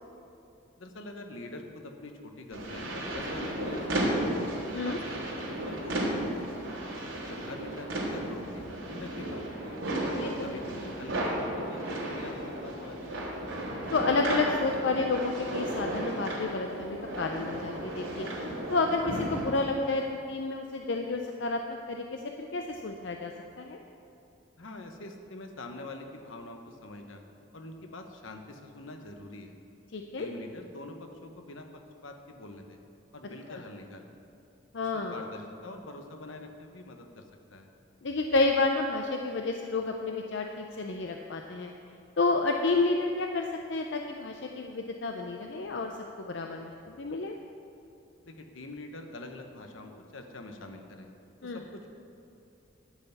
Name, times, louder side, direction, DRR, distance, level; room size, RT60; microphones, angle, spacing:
voice 1, 0.8-4.4 4.7-6.5 7.1-9.8 10.2-13.2 24.6-27.2 27.5-29.6 30.2-31.7 32.0-32.8 33.1-34.1 35.1-37.3 37.5-37.7 48.2-51.1 51.4-51.9, left 2 dB, 85° left, 4 dB, 1.1 m, -45 dB
sound 1, 2.5-19.5, right 1 dB, 85° right, 2.9 m, -34 dB
voice 2, 10.2-10.6 13.9-18.3 18.7-21.6 21.9-22.2 22.5-23.3 23.6-23.8 29.9-30.3 33.5-33.6 34.7-35.2 38.0-41.7 42.2-45.9 46.2-47.3 51.4-51.6, left 3 dB, 65° left, 3 dB, 0.6 m, -30 dB
11.5 x 5.7 x 8.1 m, 2.7 s
head